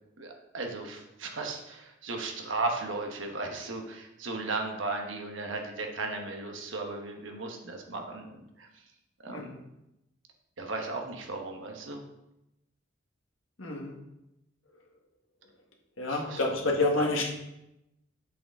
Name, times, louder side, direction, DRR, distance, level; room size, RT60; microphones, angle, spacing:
voice 1, 0.2-8.7 9.2-9.5 10.6-12.0 16.1-16.4 17.0-17.1, right 3 dB, 75° right, 3 dB, 1.2 m, -36 dB
voice 2, 9.3-9.6 13.6-13.9 16.0-17.3, left 2 dB, 90° left, 0 dB, 1.5 m, -28 dB
7.5 x 6.5 x 3.7 m, 0.89 s
head